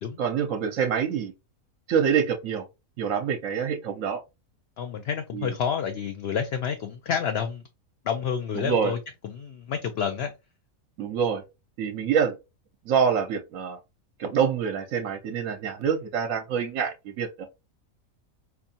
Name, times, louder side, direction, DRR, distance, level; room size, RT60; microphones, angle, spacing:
voice 1, 0.2-1.3 1.9-2.7 3.0-4.2 5.3-5.5 8.5-8.9 11.0-11.4 11.8-12.4 12.9-13.8 14.2-17.5, right 7 dB, 75° right, 1.0 m, -26 dB
voice 2, 4.8-7.6 8.1-9.0 9.2-10.3, left 7 dB, 60° left, 0.7 m, -29 dB
4.4 x 2.6 x 2.7 m
omnidirectional pair, 1.4 m